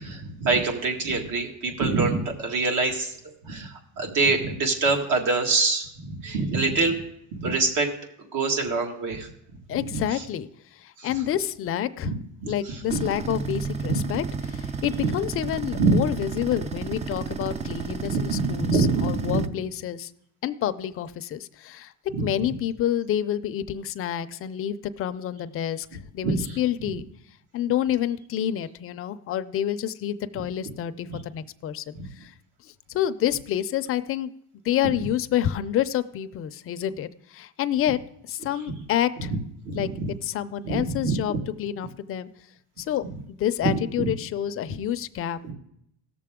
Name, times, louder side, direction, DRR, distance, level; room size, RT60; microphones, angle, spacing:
voice 1, 0.0-3.1 3.4-7.0 7.4-7.9 8.3-9.3 9.7-10.2 11.0-11.1 12.0-12.1 12.4-13.1 13.9-14.0 15.0-15.1 15.7-16.0 18.1-19.5 22.1-22.3 26.2-26.6 31.1-31.2 32.0-32.1 39.7-40.1 40.6-41.4 43.6-43.7 44.0-44.1 45.4-45.5, right 3 dB, 70° right, 2 dB, 2.0 m, -25 dB
voice 2, 9.7-12.1 12.5-20.1 20.4-21.9 22.2-27.0 27.5-32.3 32.6-34.3 34.6-38.0 38.2-39.3 39.7-39.9 40.2-42.3 42.8-45.4, left 11 dB, 40° left, 11 dB, 0.5 m, -28 dB
sound 1, 12.9-19.5, right 5 dB, 20° right, 0.4 m, -32 dB
17.5 x 6.8 x 3.6 m, 0.75 s
cardioid pair, 130°, 34 cm